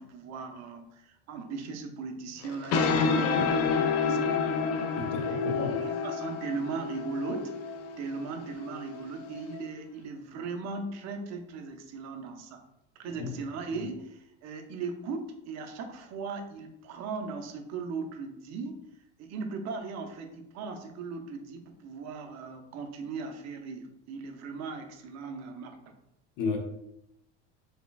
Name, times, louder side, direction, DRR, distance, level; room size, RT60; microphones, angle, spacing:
voice 1, 0.0-4.3 5.2-12.6 13.0-18.9 19.2-25.9, right 4 dB, 45° right, 5 dB, 0.8 m, -38 dB
sound 1, 2.4-9.6, left 5 dB, 45° left, 0.6 m, -29 dB
voice 2, 4.9-5.7 13.2-13.3 26.4-26.6, left 5 dB, 60° left, 1 dB, 1.1 m, -32 dB
4.2 x 3.5 x 2.3 m, 0.83 s
supercardioid pair, 100°, 36 cm